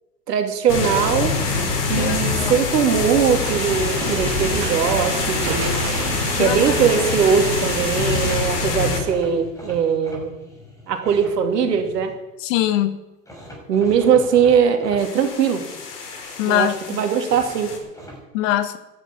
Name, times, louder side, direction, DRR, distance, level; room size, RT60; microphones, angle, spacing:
voice 1, 0.3-1.3 1.9-5.8 6.3-10.4 10.9-12.1 13.7-15.6 16.4-17.7, right 7 dB, 75° right, 5 dB, 2.9 m, -20 dB
sound 1, 0.7-9.2 15.0-17.8, left 4 dB, 70° left, 4.8 m, -25 dB
sound 2, 1.1-2.2 2.7-3.5 4.0-4.6 7.7-7.8 7.9-8.1 8.7-12.2 13.3-15.0 17.3-18.2, equal, 5° left, 6.1 m, -41 dB
voice 2, 2.0-2.6 6.3-6.6 12.4-13.0 16.4-17.0 18.3-18.8, left 13 dB, 50° left, 11 dB, 1.6 m, -22 dB
sound 3, 3.4-8.4, right 8 dB, 45° right, 2.4 m, -30 dB
12.5 x 10.0 x 9.0 m, 1.0 s
hypercardioid pair, 110°, 48 cm